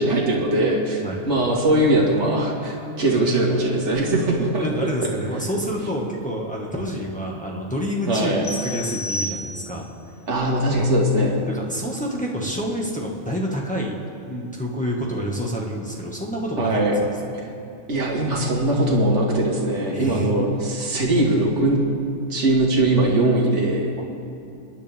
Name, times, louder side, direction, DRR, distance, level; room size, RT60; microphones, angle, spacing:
voice 1, 0.0-4.7 8.1-8.4 10.3-11.4 16.6-16.9 17.9-21.9 22.3-23.9, right 1 dB, 55° right, -3 dB, 2.2 m, -20 dB
voice 2, 4.6-9.9 11.5-14.0 14.3-16.8 19.9-20.6, equal, 5° left, -3 dB, 1.7 m, -28 dB
sound 1, 8.4-10.0, left 1 dB, 50° left, 2.4 m, -31 dB
29.0 x 10.5 x 3.6 m, 2.5 s
omnidirectional pair, 1.4 m